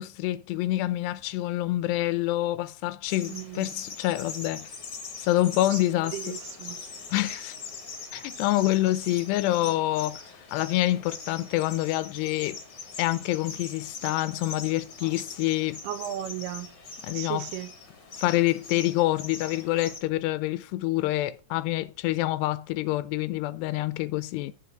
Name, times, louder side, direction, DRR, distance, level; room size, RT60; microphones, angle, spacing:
voice 1, 0.0-4.7 5.2-6.3 7.1-7.6 8.1-10.2 10.5-12.6 13.0-15.8 17.0-17.5 18.2-24.5, left 16 dB, 90° left, 2.8 m, -27 dB
sound 1, 3.1-20.0, left 4 dB, 40° left, 1.6 m, -41 dB
voice 2, 3.2-3.7 5.7-5.8 6.1-6.8 15.8-16.7 17.1-17.7, right 12 dB, 85° right, 2.7 m, -35 dB
7.9 x 7.2 x 6.3 m
omnidirectional pair, 4.7 m